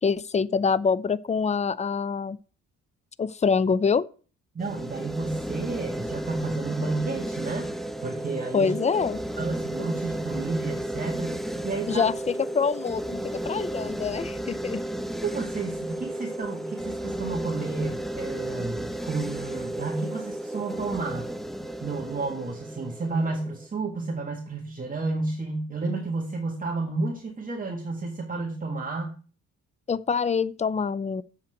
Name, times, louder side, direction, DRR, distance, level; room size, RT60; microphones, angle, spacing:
voice 1, 0.0-2.4 3.2-4.1 8.5-9.2 11.9-12.1 12.5-14.8 29.9-31.2, left 5 dB, 25° left, 0.5 m, -25 dB
sound 1, 4.6-23.7, right 1 dB, ahead, 0.9 m, -33 dB
voice 2, 4.6-7.7 8.0-8.8 9.4-12.1 15.2-21.2 21.8-29.1, right 3 dB, 30° right, 1.8 m, -31 dB
7.5 x 5.8 x 7.7 m
cardioid pair, 90°, 30 cm